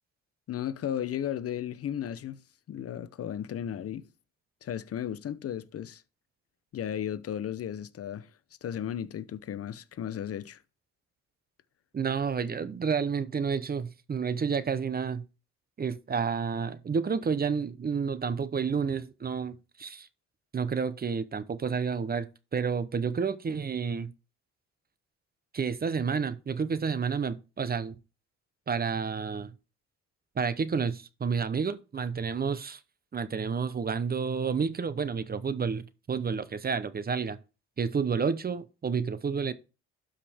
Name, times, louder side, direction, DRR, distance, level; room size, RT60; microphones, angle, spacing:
voice 1, 0.5-2.4 2.7-4.1 4.6-6.0 6.7-8.3 8.6-10.6, left 10 dB, 50° left, 0.7 m, -35 dB
voice 2, 11.9-15.2 15.8-20.1 20.5-24.1 25.5-27.9 28.7-29.5 30.4-32.8 33.1-37.4 37.8-39.5, right 6 dB, 30° right, 0.8 m, -30 dB
12.5 x 5.1 x 3.5 m
cardioid pair, 90°, 30 cm